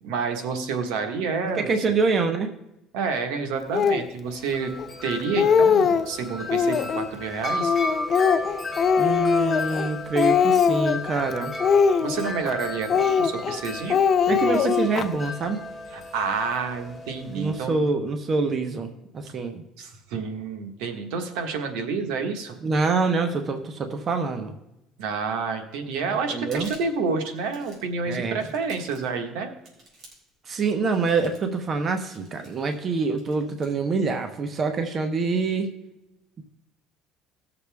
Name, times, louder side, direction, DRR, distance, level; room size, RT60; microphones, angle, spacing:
voice 1, 0.0-1.7 2.9-4.7 5.0-7.7 12.0-14.0 14.3-14.7 15.9-17.8 19.8-22.6 25.0-29.5, right 5 dB, 85° right, 6 dB, 1.5 m, -29 dB
voice 2, 1.6-2.5 9.0-11.5 14.3-15.6 17.3-19.6 22.6-24.5 26.3-26.7 28.1-28.4 30.5-35.7, right 4 dB, 35° right, 7 dB, 1.1 m, -25 dB
Speech, 3.7-4.1 4.8-4.9 5.2-6.1 6.5-7.1 7.6-9.9 10.2-11.1 11.6-12.5 12.9-13.6 13.9-15.1, left 6 dB, 40° left, 0.5 m, -21 dB
Wind chime, 4.3-17.6, left 2 dB, 15° left, 2.0 m, -34 dB
sound 1, 26.4-27.0 27.4-27.9 28.4-29.2 29.6-30.4 30.9-31.5 32.1-32.8 33.2-33.7, right 2 dB, 50° right, 4.4 m, -51 dB
18.0 x 6.9 x 3.5 m, 0.89 s
cardioid pair, 125°, 0 cm